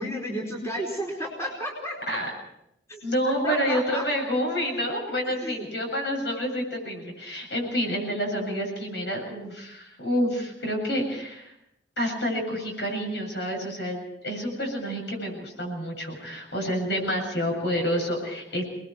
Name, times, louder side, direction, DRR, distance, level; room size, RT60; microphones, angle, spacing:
voice 1, 0.0-2.0 2.9-4.1 5.4-5.7, equal, 15° left, -2 dB, 4.6 m, -32 dB
voice 2, 3.0-11.5 12.0-18.6, equal, 65° left, 1 dB, 7.6 m, -28 dB
28.5 x 21.0 x 4.7 m, 0.80 s
head